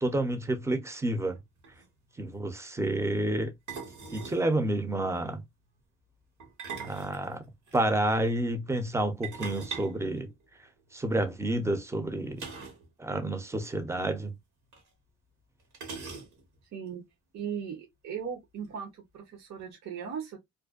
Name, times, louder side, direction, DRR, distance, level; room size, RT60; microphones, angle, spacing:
voice 1, 0.0-1.4 2.2-3.5 4.1-5.4 6.8-7.4 7.7-10.3 10.9-12.5 13.0-14.3, right 1 dB, 10° right, 0.5 m, -29 dB
sound 1, 1.4-1.5 1.6-1.9 3.7-4.5 6.4-7.8 9.2-10.9 12.4-12.9 13.1-13.2 13.6-13.7 14.7-14.8 15.7-16.6, right 5 dB, 75° right, 1.2 m, -41 dB
voice 2, 16.7-17.0 17.3-20.4, right 7 dB, 60° right, 0.8 m, -38 dB
2.4 x 2.2 x 2.3 m
cardioid pair, 90°, 30 cm